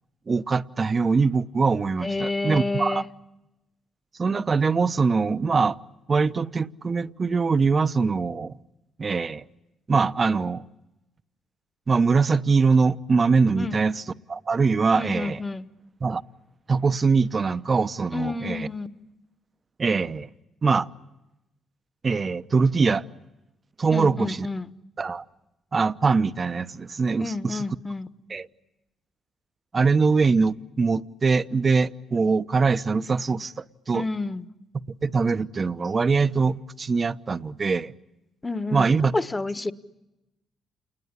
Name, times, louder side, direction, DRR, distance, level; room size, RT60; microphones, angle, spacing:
voice 1, 0.3-3.0 4.2-5.8 6.1-8.5 9.0-9.4 9.9-10.6 11.9-15.4 16.0-16.2 16.7-18.7 19.8-20.3 20.6-20.9 22.0-23.1 23.8-24.5 25.0-25.2 25.7-27.6 28.3-28.5 29.7-34.1 35.0-37.9 38.7-39.1, right 4 dB, 40° right, 1.0 m, -23 dB
voice 2, 2.0-3.0 13.6-13.8 14.9-15.6 18.1-18.9 23.9-24.7 27.2-28.1 33.9-34.4 38.4-38.9 39.1-39.7, left 3 dB, 20° left, 1.4 m, -29 dB
29.0 x 20.5 x 10.0 m
hypercardioid pair, 55°, 0 cm